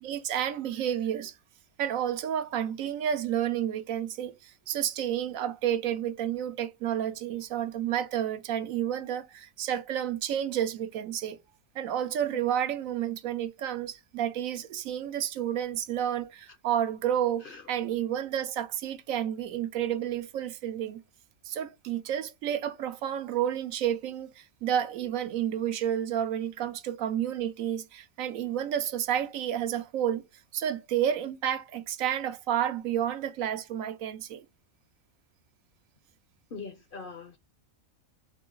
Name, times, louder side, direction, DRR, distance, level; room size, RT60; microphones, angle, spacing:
voice 1, 0.0-1.3 1.8-11.4 11.7-21.0 21.5-30.2 30.5-34.5, right 10 dB, 80° right, 1.0 m, -30 dB
voice 2, 36.5-37.4, left 4 dB, 55° left, 0.6 m, -42 dB
3.8 x 3.4 x 3.7 m
omnidirectional pair, 1.4 m